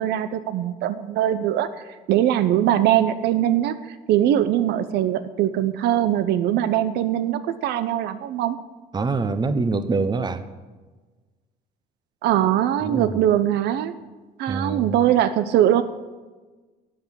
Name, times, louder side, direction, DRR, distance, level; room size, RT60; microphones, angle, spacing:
voice 1, 0.0-8.6 12.2-13.9 14.4-15.8, right 11 dB, 80° right, 12 dB, 0.7 m, -21 dB
voice 2, 8.9-10.5 12.8-13.2 14.5-15.0, right 3 dB, 25° right, 12 dB, 0.9 m, -25 dB
12.5 x 8.2 x 7.5 m, 1.3 s
cardioid pair, 110°, 17 cm